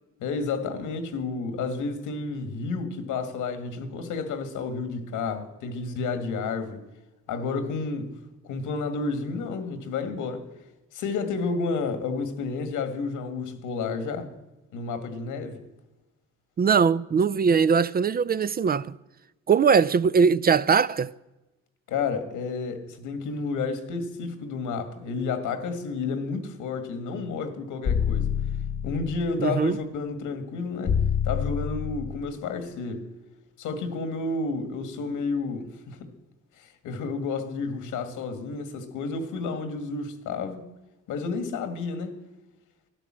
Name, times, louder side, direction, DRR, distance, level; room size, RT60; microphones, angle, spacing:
voice 1, 0.2-6.8 7.3-10.5 10.9-14.3 14.7-15.6 21.9-28.3 28.8-33.1 33.6-36.1 36.6-40.6 41.1-42.2, left 4 dB, 90° left, 1.8 m, -31 dB
voice 2, 16.6-19.0 19.5-21.1 29.4-29.8, right 6 dB, 30° right, 0.4 m, -21 dB
sound 1, 27.9-29.3 30.9-32.3, left 7 dB, 55° left, 1.1 m, -27 dB
12.0 x 11.0 x 7.4 m
cardioid pair, 90°, 30 cm